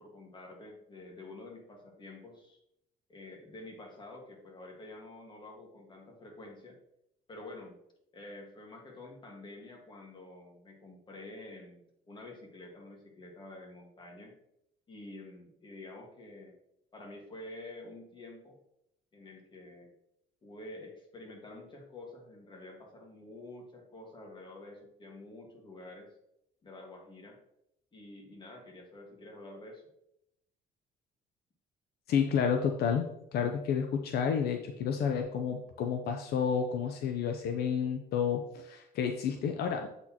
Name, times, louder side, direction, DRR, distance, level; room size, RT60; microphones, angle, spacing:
voice 1, 0.0-2.6 3.1-6.8 7.3-7.8 8.1-14.3 14.9-16.6 16.9-18.6 19.1-19.9 20.4-26.1 26.6-27.4 27.9-29.8, left 2 dB, 30° left, 1 dB, 1.6 m, -48 dB
voice 2, 32.1-33.1 33.3-39.9, left 7 dB, 70° left, 4 dB, 0.6 m, -30 dB
7.8 x 4.1 x 2.9 m, 0.78 s
cardioid pair, 110°, 17 cm